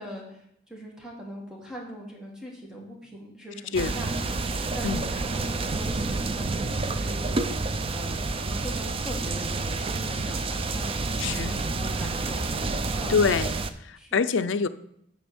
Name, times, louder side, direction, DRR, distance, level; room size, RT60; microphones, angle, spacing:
voice 1, 0.0-13.2 14.0-14.5, equal, 5° right, -2 dB, 1.8 m, -42 dB
sound 1, 3.7-13.7, right 3 dB, 30° right, 0.4 m, -29 dB
voice 2, 11.2-11.5 13.1-13.5 13.8-14.7, left 5 dB, 75° left, 12 dB, 0.5 m, -25 dB
9.2 x 3.5 x 7.0 m, 0.74 s
head